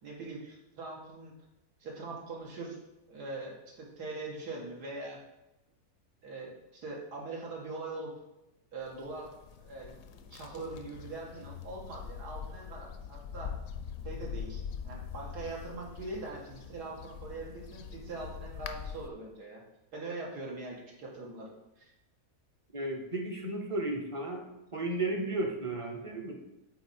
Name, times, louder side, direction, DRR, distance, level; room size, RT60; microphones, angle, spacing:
voice 1, 0.0-1.3 1.8-2.8 3.1-5.2 6.2-8.1 8.7-13.5 14.0-19.6 19.9-21.9, right 2 dB, 90° right, -2 dB, 2.2 m, -42 dB
sound 1, 8.9-19.1, left 7 dB, 70° left, 0.9 m, -43 dB
voice 2, 22.7-24.5 24.7-26.4, right 2 dB, 30° right, 3 dB, 0.6 m, -34 dB
7.9 x 4.4 x 4.3 m, 0.93 s
omnidirectional pair, 1.7 m